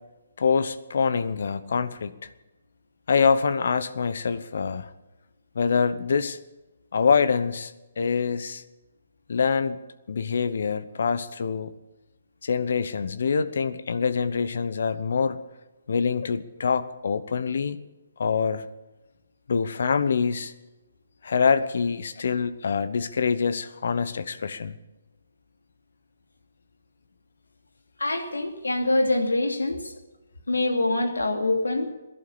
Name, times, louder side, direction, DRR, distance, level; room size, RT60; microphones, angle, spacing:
voice 1, 0.4-2.1 3.1-4.9 5.5-6.4 6.9-8.6 9.3-9.8 10.1-11.7 12.4-15.4 15.9-17.8 18.2-18.6 19.5-20.5 21.2-24.8, left 5 dB, 65° left, 13 dB, 1.0 m, -25 dB
voice 2, 28.0-30.0 30.5-31.9, left 2 dB, 85° left, 4 dB, 2.7 m, -25 dB
17.0 x 11.5 x 7.0 m, 1.1 s
figure-of-eight pair, 135°, 0 cm